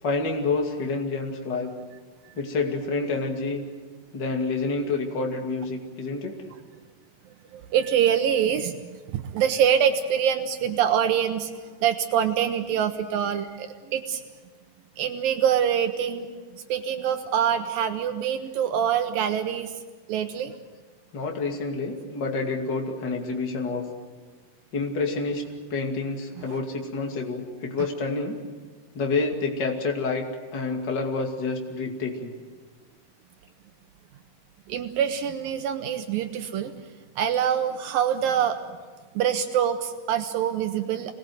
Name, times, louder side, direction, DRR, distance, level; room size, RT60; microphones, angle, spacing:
voice 1, 0.0-1.7 2.4-3.6 4.1-6.3 21.1-23.9 24.7-25.4 25.7-28.4 28.9-30.2 30.5-32.3, left 3 dB, 30° left, 1 dB, 2.7 m, -28 dB
voice 2, 7.5-14.2 15.0-16.3 16.5-19.7 20.1-20.5 26.4-26.5 34.7-36.7 37.2-38.6 39.1-41.1, right 9 dB, 75° right, 7 dB, 2.6 m, -25 dB
27.0 x 19.5 x 7.9 m, 1.4 s
omnidirectional pair, 4.2 m